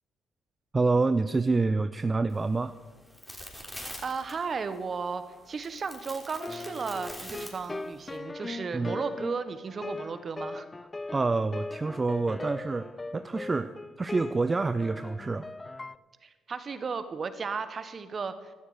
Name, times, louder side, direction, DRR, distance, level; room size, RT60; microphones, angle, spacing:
voice 1, 0.7-2.7 8.7-9.0 11.1-13.7 14.0-15.5, right 3 dB, 30° right, 11 dB, 0.6 m, -27 dB
sound 1, 2.3-8.2, equal, 5° left, 3.6 m, -46 dB
voice 2, 4.0-10.7 16.2-18.5, right 5 dB, 45° right, 11 dB, 1.3 m, -35 dB
sound 2, 6.4-16.0, left 2 dB, 25° left, 0.5 m, -39 dB
15.5 x 12.5 x 5.0 m, 1.3 s
hypercardioid pair, 50°, 0 cm